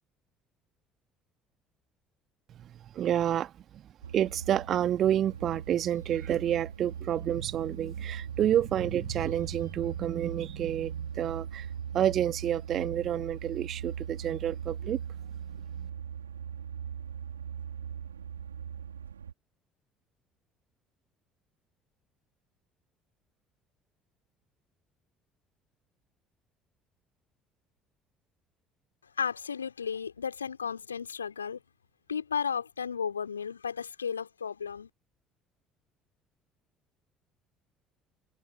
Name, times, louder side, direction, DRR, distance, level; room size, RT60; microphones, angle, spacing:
voice 1, 2.5-3.9 4.1-15.0 15.8-15.9, right 10 dB, 45° right, 1.9 m, -29 dB
sound 1, 4.0-19.3, right 8 dB, 80° right, 2.6 m, -40 dB
voice 2, 29.2-31.6 32.1-34.9, left 6 dB, 80° left, 2.8 m, -34 dB
open air
figure-of-eight pair, 55°, 0 cm